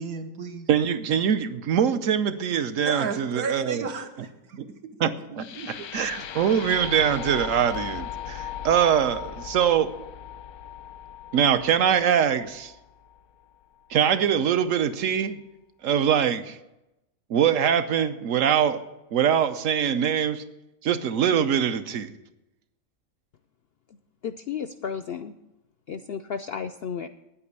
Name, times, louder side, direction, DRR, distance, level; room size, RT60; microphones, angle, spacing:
voice 1, 0.0-0.7 2.8-4.6 5.3-5.9, right 4 dB, 90° right, 6 dB, 1.7 m, -33 dB
voice 2, 0.7-3.9 4.5-4.7 5.0-9.9 11.3-12.7 13.9-15.4 15.8-16.6 17.3-18.8 19.1-20.4 20.8-22.1, right 8 dB, 65° right, 11 dB, 1.1 m, -23 dB
sound 1, 5.4-13.4, left 9 dB, 90° left, 1.3 m, -38 dB
voice 3, 24.2-25.3 25.9-27.1, left 7 dB, 70° left, 10 dB, 0.5 m, -33 dB
9.8 x 8.5 x 8.1 m, 0.94 s
omnidirectional pair, 1.5 m